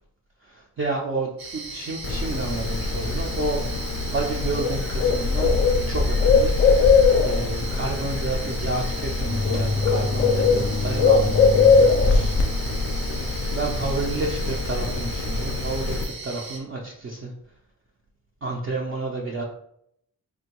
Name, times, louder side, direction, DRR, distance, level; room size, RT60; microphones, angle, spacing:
voice 1, 0.4-5.5 5.9-6.6 6.9-12.4 13.1-17.3 18.4-19.4, right 2 dB, 35° right, -2 dB, 0.5 m, -30 dB
sound 1, 1.4-16.6, right 4 dB, 65° right, 0.9 m, -38 dB
Bird, 2.0-16.0, left 4 dB, 35° left, 0.4 m, -21 dB
3.5 x 2.2 x 2.9 m, 0.72 s
cardioid pair, 100°, 38 cm